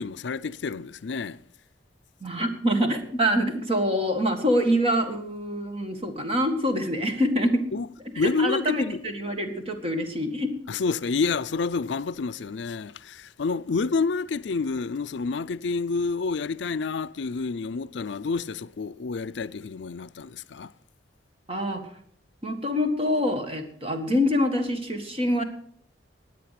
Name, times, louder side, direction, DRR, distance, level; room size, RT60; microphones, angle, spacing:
voice 1, 0.0-1.4 7.7-7.9 8.2-9.0 10.7-20.7, left 4 dB, 70° left, 0.5 m, -29 dB
voice 2, 2.2-7.7 8.2-10.5 21.5-21.8 22.4-25.4, equal, 30° right, 1.9 m, -25 dB
16.5 x 9.9 x 5.9 m
head